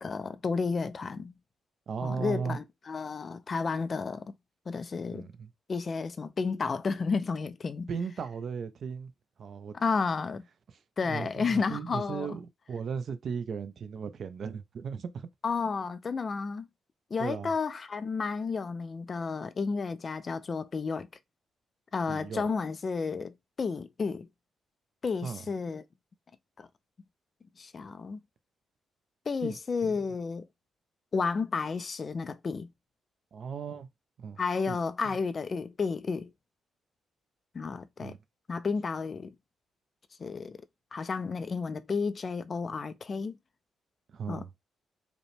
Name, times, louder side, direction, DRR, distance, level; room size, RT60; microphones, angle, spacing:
voice 1, 0.0-1.3 2.0-4.3 4.7-5.3 5.7-7.9 9.7-10.4 11.0-12.4 15.4-16.7 17.1-21.1 21.9-24.3 25.0-25.8 26.6-26.7 27.6-28.2 29.3-30.5 31.1-32.7 34.4-36.3 37.5-38.1 38.5-39.3 40.2-40.6 40.9-43.4 44.3-44.4, left 4 dB, 30° left, 0.3 m, -32 dB
voice 2, 1.9-2.6 5.1-5.5 7.9-9.1 9.4-9.8 11.0-15.3 17.2-17.5 22.1-22.5 25.2-25.4 29.4-29.9 33.3-33.9 34.2-34.4 34.7-34.8 35.0-35.2 38.0-38.2 44.1-44.5, right 6 dB, 45° right, 0.5 m, -36 dB
5.0 x 2.1 x 3.2 m
cardioid pair, 165°, 0 cm